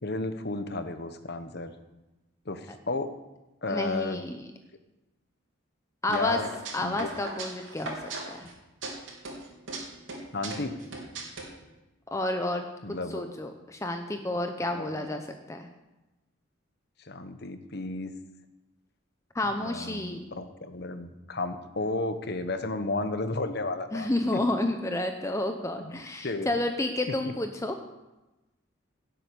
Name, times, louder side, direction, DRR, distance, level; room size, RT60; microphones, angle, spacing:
voice 1, 0.0-1.7 2.4-3.1 3.6-4.2 6.1-6.5 6.8-7.1 10.3-10.7 12.8-13.3 14.7-15.1 17.0-18.1 19.5-24.4 25.8-26.5, left 2 dB, 50° left, 9 dB, 1.0 m, -33 dB
voice 2, 3.7-4.4 6.0-6.4 6.7-8.5 12.1-12.7 13.1-15.7 19.3-20.3 23.9-27.7, left 1 dB, 15° left, 5 dB, 0.7 m, -30 dB
sound 1, 6.1-8.5 8.8-9.8 10.1-11.4, right 2 dB, 70° right, 3.5 m, -38 dB
17.0 x 7.8 x 6.9 m, 1.0 s
head